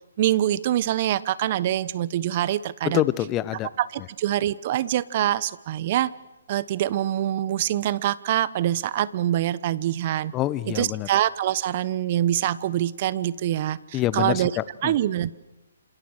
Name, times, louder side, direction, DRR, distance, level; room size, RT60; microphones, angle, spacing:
voice 1, 0.2-3.0 3.8-6.1 6.5-10.3 10.7-14.5 14.8-15.3, right 12 dB, 40° right, 18 dB, 1.0 m, -25 dB
voice 2, 2.8-3.7 10.3-11.1 13.9-15.0, left 14 dB, 20° left, 18 dB, 0.9 m, -26 dB
28.0 x 27.0 x 6.6 m, 1.0 s
hypercardioid pair, 145°, 0 cm